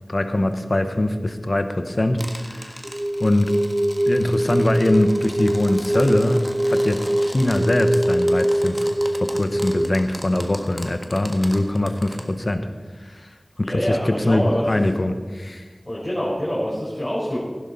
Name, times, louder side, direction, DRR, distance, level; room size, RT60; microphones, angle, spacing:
voice 1, 0.1-2.9 3.2-3.5 4.1-12.7 13.0-15.6, left 1 dB, 55° left, 8 dB, 1.1 m, -22 dB
sound 1, 2.2-12.2, equal, 5° right, 1.5 m, -38 dB
sound 2, 2.8-9.9, right 1 dB, 25° right, 0.5 m, -23 dB
voice 2, 13.6-14.6 15.9-17.4, equal, 25° left, -9 dB, 4.5 m, -25 dB
15.5 x 11.0 x 4.2 m, 1.4 s
wide cardioid pair, 45°, 0 cm